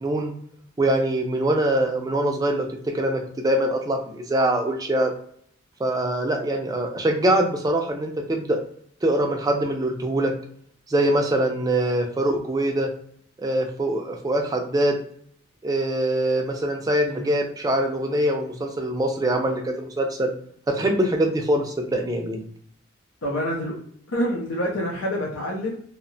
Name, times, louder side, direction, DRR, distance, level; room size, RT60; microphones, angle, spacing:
voice 1, 0.0-0.3 0.8-2.6 2.9-5.1 5.8-8.6 9.0-10.3 10.9-12.9 13.4-14.9 15.6-20.3 20.7-22.4, right 1 dB, 15° right, 3 dB, 0.3 m, -23 dB
voice 2, 23.2-23.8 24.1-25.8, equal, 70° left, -2 dB, 0.5 m, -27 dB
2.7 x 2.0 x 2.5 m, 0.63 s
head